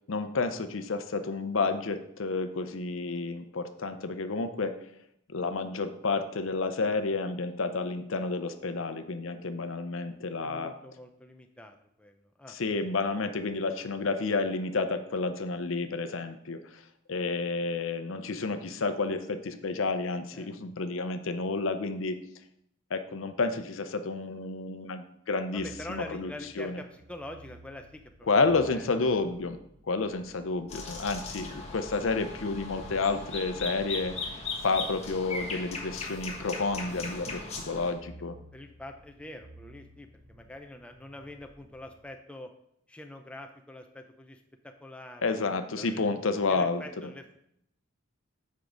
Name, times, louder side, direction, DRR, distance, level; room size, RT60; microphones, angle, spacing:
voice 1, 0.1-4.8 5.3-10.7 12.5-16.8 17.1-22.2 22.9-26.3 26.6-26.8 28.3-29.6 29.9-38.4 45.2-46.8, left 3 dB, 75° left, 9 dB, 0.6 m, -30 dB
voice 2, 10.4-12.6 20.3-20.5 25.5-28.4 28.7-29.0 37.3-37.5 38.0-38.1 38.5-42.5 42.9-46.1 46.5-47.3, left 1 dB, 5° left, 4 dB, 0.4 m, -45 dB
sound 1, 25.5-42.0, right 1 dB, 60° right, 1.3 m, -55 dB
sound 2, 30.7-37.9, left 3 dB, 30° left, 1.2 m, -38 dB
7.4 x 4.6 x 5.0 m, 0.75 s
head